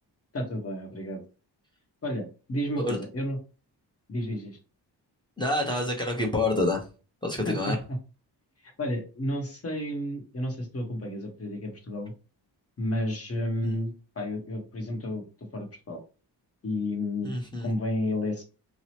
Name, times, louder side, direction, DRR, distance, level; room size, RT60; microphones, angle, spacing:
voice 1, 0.3-1.2 2.0-3.4 4.1-4.6 7.4-8.0 8.6-12.1 12.8-15.2 15.5-16.0 16.6-17.3 17.6-18.4, left 1 dB, 35° left, 3 dB, 0.9 m, -31 dB
voice 2, 5.4-6.8 7.2-7.8 13.6-13.7 17.2-17.7, left 2 dB, 10° left, 0 dB, 0.8 m, -27 dB
2.8 x 2.0 x 2.8 m, 0.33 s
cardioid pair, 80°, 42 cm